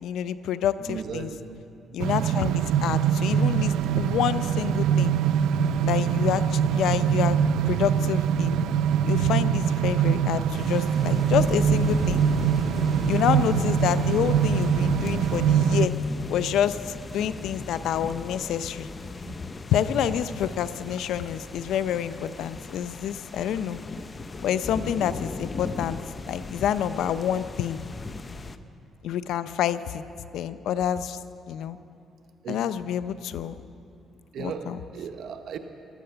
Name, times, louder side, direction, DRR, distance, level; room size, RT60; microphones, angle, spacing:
voice 1, 0.0-1.3 1.9-5.2 5.9-7.4 7.7-8.6 9.1-12.2 13.1-15.9 16.3-18.9 19.7-23.8 24.4-26.0 26.3-27.8 29.0-30.0 30.3-31.2 31.5-31.8 32.5-33.5 34.4-34.8, left 9 dB, 80° left, 14 dB, 0.5 m, -28 dB
voice 2, 0.8-1.6 5.2-5.4 19.2-19.4 32.4-32.6 34.3-35.6, right 6 dB, 65° right, 7 dB, 0.9 m, -36 dB
sound 1, 2.0-15.9, right 8 dB, 85° right, 0.4 m, -23 dB
sound 2, 10.5-28.6, left 3 dB, 30° left, 0.7 m, -37 dB
16.5 x 12.0 x 6.8 m, 2.6 s
cardioid pair, 90°, 0 cm